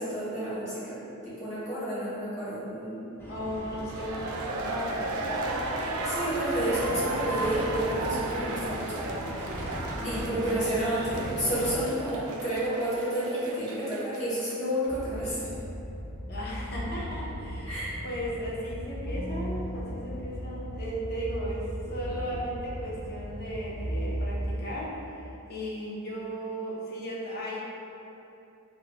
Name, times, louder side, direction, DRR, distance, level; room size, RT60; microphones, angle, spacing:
voice 1, 0.0-3.1 6.0-9.0 10.0-15.5 17.7-18.0, right 1 dB, 30° left, -11 dB, 1.1 m, -30 dB
sound 1, 3.2-11.8, equal, 10° left, 0.4 m, -38 dB
voice 2, 3.3-5.9 9.9-10.8 16.3-17.7 18.0-27.6, equal, 45° left, -5 dB, 0.7 m, -36 dB
sound 2, 3.7-14.6 14.8-14.9, right 2 dB, 70° right, 0.3 m, -35 dB
sound 3, 14.9-24.6, equal, 85° left, 0.9 m, -36 dB
4.3 x 2.2 x 2.9 m, 2.9 s
head